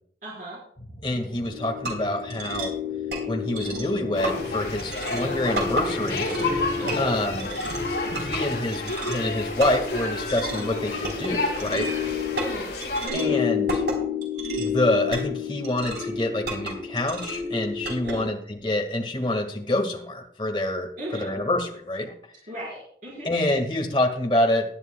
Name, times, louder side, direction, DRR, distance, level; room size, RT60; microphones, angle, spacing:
voice 1, 0.2-0.6 5.0-5.3 6.8-7.1 10.6-10.8 12.3-12.7 13.0-13.4 18.0-18.4 21.0-21.3 22.5-23.3, equal, 50° right, -6 dB, 4.5 m, -37 dB
sound 1, 0.8-8.7, equal, 50° left, 4.7 m, -40 dB
voice 2, 1.0-2.7 3.3-6.3 6.5-6.6 7.0-7.5 8.2-11.9 13.1-13.7 14.6-22.1 23.2-24.6, left 1 dB, 25° left, 2 dB, 1.7 m, -26 dB
sound 2, 1.5-18.1, left 3 dB, 85° right, 3.9 m, -30 dB
sound 3, 4.1-13.1, left 2 dB, 70° left, 5.0 m, -31 dB
19.0 x 11.0 x 2.2 m, 0.64 s
head